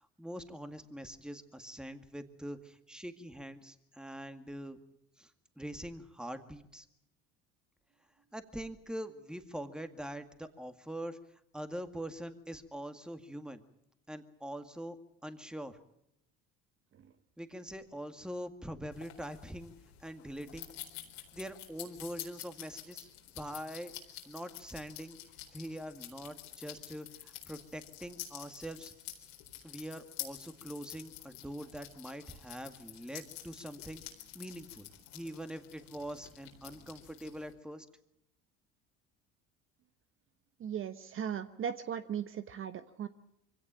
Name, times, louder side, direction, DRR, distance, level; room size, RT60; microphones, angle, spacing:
voice 1, 0.2-4.8 5.2-5.3 5.6-6.9 8.3-11.2 11.5-13.6 14.1-15.8 17.4-19.7 20.0-20.7 21.3-23.1 23.3-23.9 24.3-25.2 25.5-28.9 29.2-29.3 29.6-37.9, equal, 5° right, 8 dB, 2.1 m, -43 dB
sound 1, 18.9-37.5, left 13 dB, 85° left, 4.2 m, -49 dB
voice 2, 40.6-43.1, right 8 dB, 45° right, 11 dB, 1.1 m, -37 dB
24.0 x 17.0 x 8.9 m, 0.79 s
supercardioid pair, 90°, 30 cm